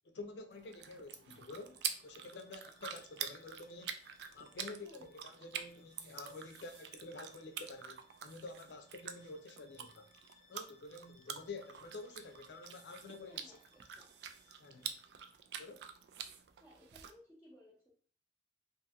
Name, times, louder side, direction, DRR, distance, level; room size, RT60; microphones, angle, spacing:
voice 1, 0.0-4.0 4.3-10.1 10.5-13.4 14.6-14.9 15.6-15.8, left 3 dB, 85° left, 0.5 m, -49 dB
sound 1, 0.5-17.1, right 8 dB, 75° right, 0.3 m, -47 dB
Bowed string instrument, 1.3-15.1, left 4 dB, 50° right, 1.1 m, -69 dB
voice 2, 13.2-14.1 16.6-17.9, equal, 10° right, 0.6 m, -61 dB
2.6 x 2.6 x 2.4 m
head